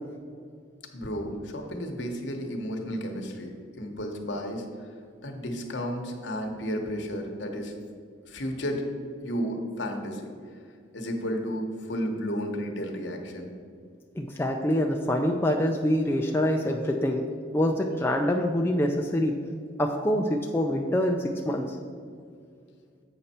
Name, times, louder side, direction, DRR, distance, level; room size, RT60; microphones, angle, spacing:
voice 1, 0.9-4.9 5.2-7.7 8.2-8.8 9.2-10.3 10.9-13.5, equal, 65° left, 3 dB, 1.0 m, -32 dB
voice 2, 14.2-17.3 17.5-19.4 19.8-21.8, equal, 10° left, 1 dB, 0.3 m, -25 dB
7.9 x 5.4 x 4.2 m, 2.2 s
head